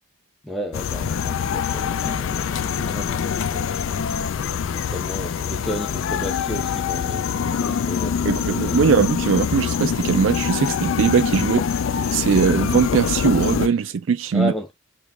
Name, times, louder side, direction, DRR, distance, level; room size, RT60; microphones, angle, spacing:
voice 1, 0.4-8.8 14.3-14.7, left 1 dB, ahead, 0.5 m, -33 dB
sound 1, 0.7-13.7, left 7 dB, 75° left, 0.4 m, -24 dB
voice 2, 8.2-11.7 12.1-14.5, right 6 dB, 70° right, 0.4 m, -20 dB
3.1 x 3.0 x 3.5 m
head